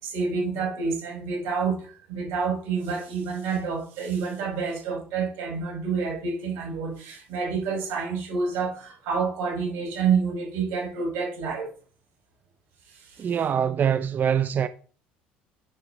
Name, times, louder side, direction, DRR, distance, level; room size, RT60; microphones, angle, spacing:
voice 1, 0.0-11.7 12.9-13.4, right 5 dB, 70° right, 5.2 m, -28 dB
voice 2, 13.2-14.7, right 8 dB, 40° right, 0.6 m, -24 dB
11.5 x 5.0 x 3.9 m
hypercardioid pair, 75°, 5 cm